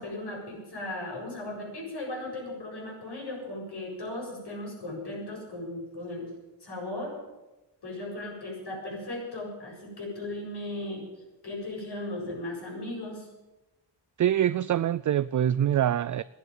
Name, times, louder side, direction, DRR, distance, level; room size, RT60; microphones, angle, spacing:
voice 1, 0.0-6.3 6.6-7.2 7.8-11.1 11.4-13.3, left 1 dB, 60° left, 7.7 m, -37 dB
voice 2, 14.2-16.2, right 10 dB, 45° right, 0.4 m, -24 dB
14.0 x 10.5 x 9.2 m
cardioid pair, 85°, 44 cm